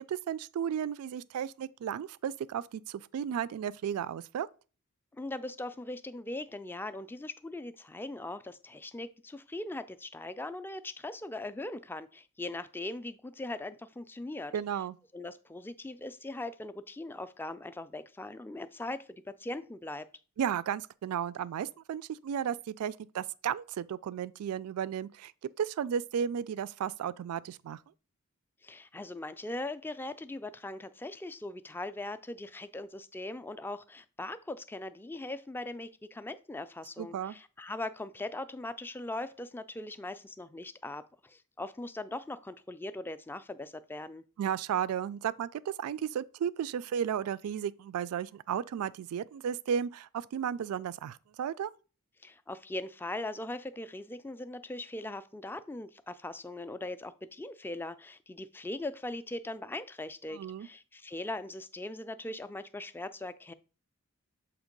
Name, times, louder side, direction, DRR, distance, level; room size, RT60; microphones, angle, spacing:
voice 1, 0.1-4.5 14.5-15.0 20.4-25.3 25.6-27.8 37.0-37.4 44.4-51.7 60.3-60.7, right 8 dB, 80° right, 0.3 m, -34 dB
voice 2, 5.1-14.5 15.1-20.1 28.6-44.2 52.2-63.5, left 2 dB, 10° left, 0.3 m, -40 dB
7.1 x 2.9 x 5.1 m
head